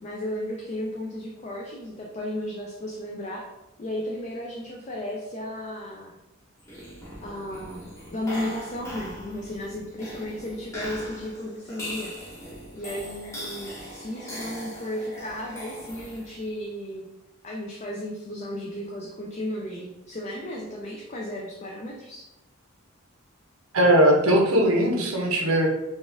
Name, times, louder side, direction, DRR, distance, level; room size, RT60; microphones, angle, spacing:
voice 1, 0.0-3.4 3.8-6.2 7.2-7.8 8.1-12.1 12.7-17.1 17.4-22.2, left 1 dB, 35° left, -1 dB, 0.4 m, -34 dB
sound 1, 6.6-16.5, equal, 15° left, 0.8 m, -40 dB
voice 2, 23.7-25.7, equal, 90° right, 0 dB, 0.9 m, -19 dB
4.1 x 2.4 x 3.5 m, 0.95 s
head